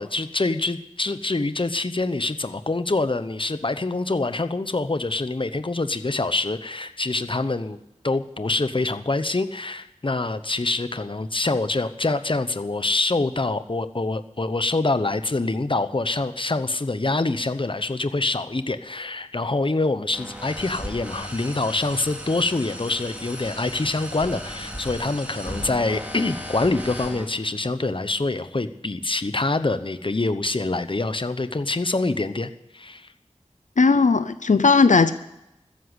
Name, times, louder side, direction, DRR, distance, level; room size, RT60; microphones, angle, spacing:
voice 1, 0.0-7.8 8.0-33.1, left 2 dB, 45° left, 11 dB, 0.9 m, -25 dB
sound 1, 20.1-27.2, equal, 10° right, 3.8 m, -36 dB
voice 2, 33.8-35.1, left 4 dB, 85° left, 13 dB, 0.6 m, -17 dB
14.0 x 10.5 x 8.2 m, 0.88 s
wide cardioid pair, 45°, 12 cm